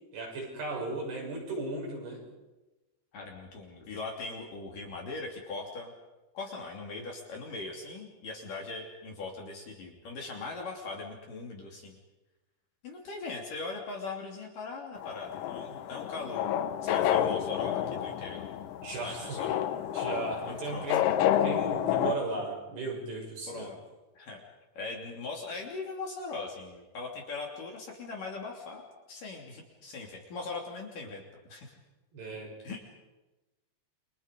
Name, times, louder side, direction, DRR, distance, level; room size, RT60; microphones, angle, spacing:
voice 1, 0.1-2.2 18.8-19.5 19.9-23.7 32.1-32.5, right 3 dB, 60° right, -1 dB, 8.5 m, -36 dB
voice 2, 3.1-5.9 6.3-12.0 12.8-18.4 18.9-19.6 20.5-20.9 23.5-23.8 24.2-24.4 24.8-28.8 29.1-31.2 31.5-31.7 32.6-32.8, left 3 dB, 50° left, 0 dB, 4.2 m, -40 dB
sound 1, 14.9-22.2, left 11 dB, 75° left, 2.7 m, -30 dB
30.0 x 25.0 x 5.3 m, 1.1 s
omnidirectional pair, 5.4 m